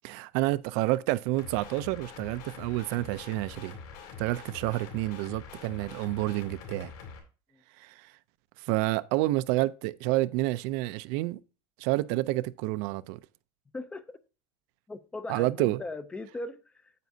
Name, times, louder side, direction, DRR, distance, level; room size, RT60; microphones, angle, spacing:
voice 1, 0.0-3.8 4.2-6.9 7.8-7.9 8.7-11.4 11.8-13.2 15.3-15.8, right 18 dB, 60° right, 0.5 m, -29 dB
sound 1, 1.4-7.2, left 5 dB, 60° left, 3.2 m, -45 dB
voice 2, 13.7-14.2 14.9-16.9, left 2 dB, 10° left, 0.5 m, -39 dB
9.3 x 8.3 x 2.7 m
cardioid pair, 170°, 12 cm